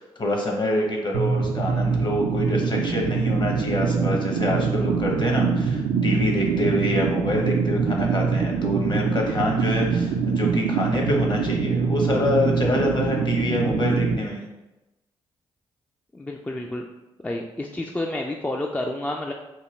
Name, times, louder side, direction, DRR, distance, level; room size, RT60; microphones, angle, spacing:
voice 1, 0.0-14.4, left 1 dB, 40° left, 1 dB, 0.9 m, -26 dB
sound 1, 1.1-14.1, right 5 dB, 85° right, 0.4 m, -24 dB
voice 2, 16.1-16.8 17.2-19.3, left 1 dB, 15° left, 1 dB, 0.3 m, -29 dB
2.9 x 2.2 x 3.2 m, 1.0 s
supercardioid pair, 45°, 11 cm